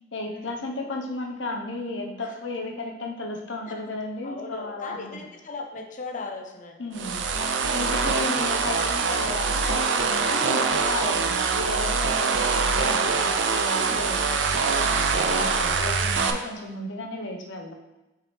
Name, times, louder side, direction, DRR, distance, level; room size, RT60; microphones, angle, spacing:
voice 1, 0.1-5.2 6.8-7.2 7.7-17.7, left 2 dB, 80° left, 2 dB, 0.9 m, -34 dB
voice 2, 4.2-6.8 7.1-7.4 7.8-8.0 10.1-10.6 13.8-14.0 16.0-16.4, left 3 dB, 45° left, 4 dB, 0.8 m, -39 dB
sound 1, 6.9-16.3, right 4 dB, 75° right, 0.5 m, -24 dB
5.7 x 4.7 x 3.4 m, 1.0 s
head